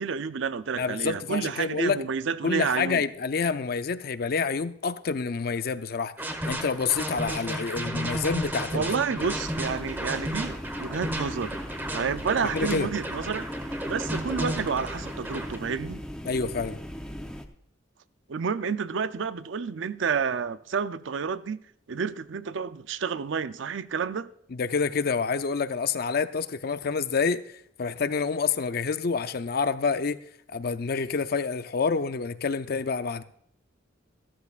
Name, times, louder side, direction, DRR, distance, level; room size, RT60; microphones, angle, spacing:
voice 1, 0.0-3.0 8.7-11.6 11.9-13.5 13.9-16.0 18.3-21.6 21.9-24.3, right 6 dB, 75° right, 0.5 m, -30 dB
voice 2, 0.8-2.0 2.4-6.1 6.4-8.9 12.5-12.9 16.3-16.8 24.5-33.2, left 5 dB, 55° left, 0.5 m, -28 dB
sound 1, 6.2-15.6, right 1 dB, 10° right, 1.1 m, -33 dB
sound 2, 9.2-17.5, equal, 5° left, 0.7 m, -38 dB
14.0 x 13.5 x 2.4 m
head